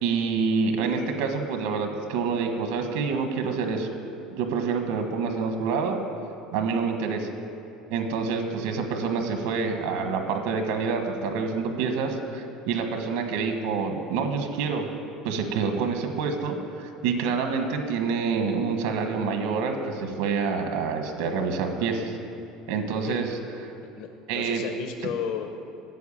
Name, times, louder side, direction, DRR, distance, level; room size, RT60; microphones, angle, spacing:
voice 1, 0.0-3.9 4.3-6.0 6.5-7.3 7.9-14.9 15.2-22.1 22.7-23.3 24.3-24.6, right 5 dB, 80° right, 5 dB, 1.4 m, -27 dB
voice 2, 24.0-25.6, left 7 dB, 60° left, 6 dB, 0.8 m, -33 dB
9.3 x 7.1 x 9.0 m, 2.9 s
cardioid pair, 165°, 0 cm